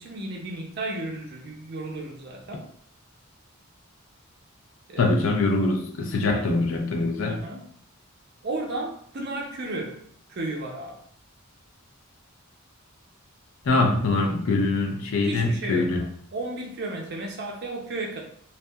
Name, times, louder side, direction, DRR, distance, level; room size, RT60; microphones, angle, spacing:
voice 1, 0.0-2.6 4.9-5.1 6.3-6.6 7.2-7.6 8.4-10.0 10.3-11.0 15.2-18.2, right 2 dB, 50° right, 1 dB, 0.5 m, -34 dB
voice 2, 5.0-7.4 13.6-16.0, left 2 dB, 75° left, 3 dB, 0.5 m, -23 dB
2.6 x 2.2 x 2.2 m, 0.62 s
head